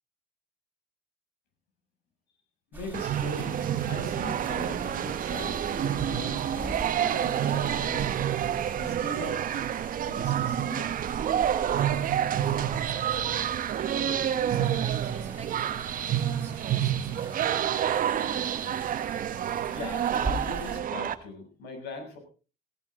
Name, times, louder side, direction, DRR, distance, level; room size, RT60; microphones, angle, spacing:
voice 1, 2.7-8.2 8.8-9.7 10.1-11.0 19.7-22.2, left 2 dB, 80° left, 5 dB, 7.2 m, -40 dB
sound 1, 2.7-20.8, right 2 dB, 10° right, 3.0 m, -43 dB
sound 2, 2.9-21.1, right 10 dB, 55° right, 1.4 m, -28 dB
voice 2, 12.7-17.8, right 7 dB, 40° right, 3 dB, 2.2 m, -44 dB
17.0 x 16.0 x 3.9 m, 0.35 s
cardioid pair, 110°, 17 cm